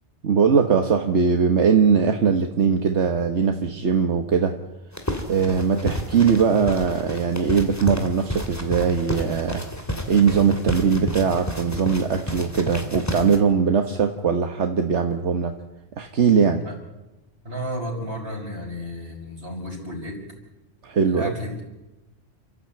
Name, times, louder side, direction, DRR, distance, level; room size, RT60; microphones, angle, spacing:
voice 1, 0.2-4.5 5.3-9.6 10.1-15.5 16.0-16.6 20.8-21.3, right 6 dB, 85° right, 5 dB, 1.6 m, -20 dB
sound 1, 4.9-13.4, equal, 15° left, 2.7 m, -31 dB
voice 2, 17.4-20.2 21.0-21.6, equal, 55° right, 0 dB, 6.0 m, -32 dB
29.5 x 14.0 x 8.8 m, 1.0 s
omnidirectional pair, 1.1 m